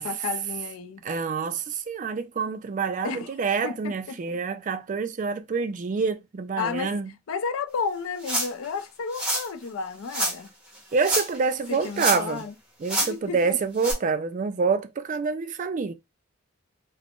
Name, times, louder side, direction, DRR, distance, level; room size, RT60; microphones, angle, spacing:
voice 1, 0.0-1.0 3.0-3.3 3.6-4.2 6.6-6.9 7.3-10.5 11.7-12.5 13.1-13.6, left 5 dB, 75° left, 0.4 m, -32 dB
voice 2, 1.0-7.1 10.9-12.4 12.8-15.9, right 5 dB, 35° right, 0.3 m, -27 dB
sound 1, 8.2-8.7 9.1-9.5 10.1-10.4 11.0-11.4 11.7-12.4 12.9-13.1 13.8-13.9, right 1 dB, 5° right, 0.8 m, -27 dB
2.4 x 2.0 x 3.5 m
head